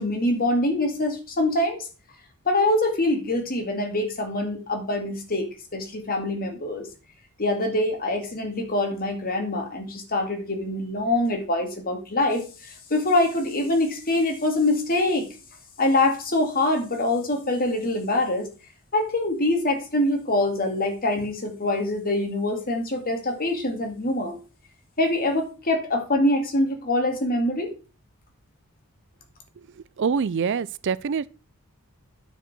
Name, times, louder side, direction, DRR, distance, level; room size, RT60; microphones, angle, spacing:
voice 1, 0.0-1.9 2.5-6.9 7.4-15.3 15.8-18.5 18.9-24.4 25.0-27.7, left 1 dB, 40° left, 2.3 m, -24 dB
voice 2, 29.8-31.3, right 6 dB, 55° right, 0.4 m, -25 dB
9.1 x 5.2 x 6.0 m
head